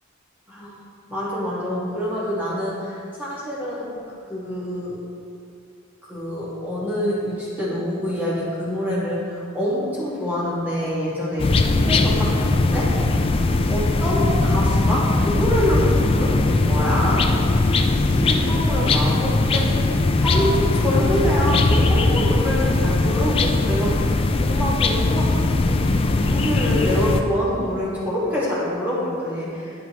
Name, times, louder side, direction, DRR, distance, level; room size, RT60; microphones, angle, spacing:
voice 1, 1.1-4.0 4.3-5.0 6.1-12.9 13.7-17.2 18.1-19.8 20.2-24.1 24.4-29.7, equal, 10° right, -8 dB, 1.8 m, -26 dB
sound 1, 11.4-27.2, left 2 dB, 25° left, 0.3 m, -20 dB
10.5 x 5.1 x 3.1 m, 2.5 s
head